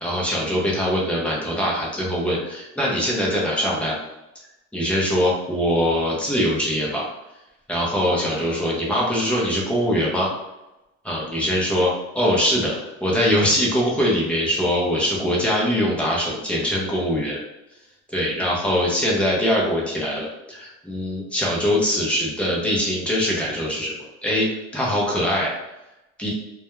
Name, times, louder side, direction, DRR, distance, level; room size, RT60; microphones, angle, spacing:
voice 1, 0.0-4.0 4.7-7.0 7.7-10.3 11.0-12.7 13.0-17.4 18.1-23.9 24.2-24.5 24.7-25.5 26.2-26.3, equal, 5° left, -5 dB, 0.5 m, -22 dB
2.2 x 2.1 x 2.9 m, 0.97 s
cardioid pair, 140°, 35 cm